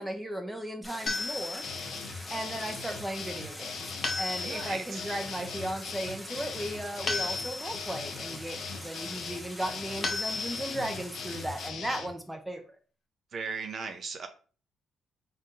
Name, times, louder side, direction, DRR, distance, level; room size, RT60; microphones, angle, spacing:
voice 1, 0.0-12.6, right 1 dB, 10° right, 0.8 m, -36 dB
Stream, 0.8-11.7, left 1 dB, 15° left, 1.0 m, -44 dB
sound 1, 1.1-2.0 4.0-4.9 7.1-8.0 10.0-10.9, left 3 dB, 40° left, 0.9 m, -34 dB
sound 2, 1.6-12.1, left 5 dB, 70° left, 0.6 m, -40 dB
voice 2, 4.4-5.0 13.3-14.3, right 5 dB, 55° right, 0.6 m, -37 dB
4.1 x 2.5 x 3.8 m
cardioid pair, 90°, 0 cm